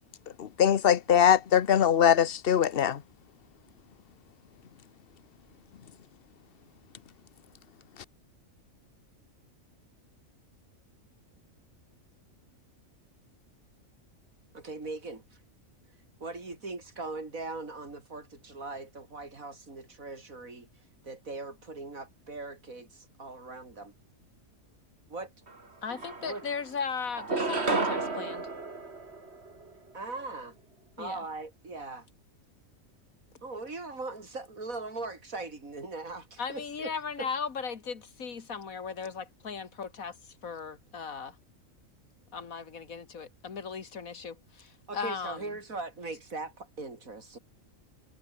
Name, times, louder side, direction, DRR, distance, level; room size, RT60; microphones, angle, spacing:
voice 1, 0.4-3.0, left 9 dB, 50° left, 1.0 m, -22 dB
voice 2, 14.5-15.2 16.2-20.7 21.0-23.9 25.1-25.3 26.2-26.5 29.9-30.6 31.0-32.1 33.4-36.9 37.2-37.3 44.9-47.4, right 3 dB, 85° right, 4.4 m, -40 dB
sound 1, 25.5-25.6 25.9-26.7 27.1-29.7, right 3 dB, 50° right, 3.0 m, -32 dB
voice 3, 25.8-28.5 31.0-31.2 36.4-41.4 42.3-45.5, left 5 dB, 90° left, 2.3 m, -37 dB
omnidirectional pair, 1.4 m